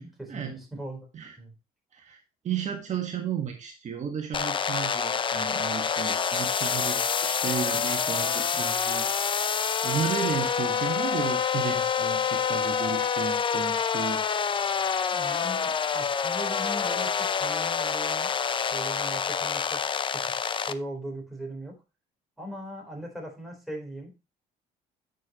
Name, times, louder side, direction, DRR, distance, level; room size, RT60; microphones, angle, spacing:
voice 1, 0.0-1.1 1.4-1.5 15.1-18.3 18.7-19.8 20.1-20.3 20.7-21.8 22.4-24.1, right 1 dB, ahead, 0 dB, 4.0 m, -39 dB
voice 2, 2.4-9.1 9.3-14.2, right 7 dB, 45° right, 2 dB, 1.6 m, -33 dB
sound 1, 4.3-20.7, left 6 dB, 30° left, 0.6 m, -27 dB
9.2 x 6.7 x 2.9 m, 0.28 s
cardioid pair, 110°, 17 cm